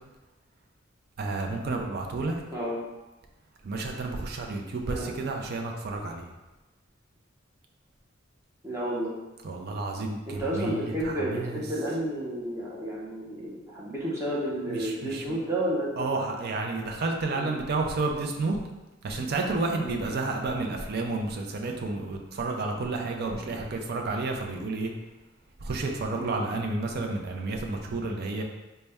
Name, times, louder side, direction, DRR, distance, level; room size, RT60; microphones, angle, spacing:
voice 1, 1.2-2.4 3.6-6.3 9.4-11.6 14.7-15.2 16.0-18.6 19.0-24.9 25.6-28.4, right 3 dB, 50° right, 2 dB, 0.5 m, -31 dB
voice 2, 8.6-9.1 10.3-16.3 17.3-17.5 19.8-20.0 26.1-26.3, right 1 dB, 15° right, -6 dB, 0.8 m, -31 dB
4.0 x 2.2 x 3.4 m, 1.1 s
head